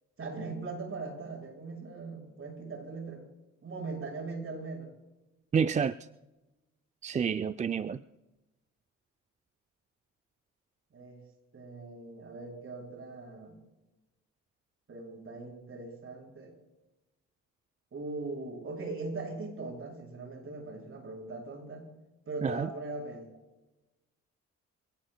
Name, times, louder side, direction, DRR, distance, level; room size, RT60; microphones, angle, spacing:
voice 1, 0.2-3.2 3.6-4.9 10.9-11.2 11.5-13.6 14.9-16.5 17.9-21.9 22.2-23.2, right 3 dB, 45° right, 6.6 m, -40 dB
voice 2, 5.5-6.0 7.0-8.0 22.4-22.7, right 6 dB, 25° right, 0.4 m, -29 dB
27.0 x 18.0 x 2.2 m
cardioid pair, 90°, 30 cm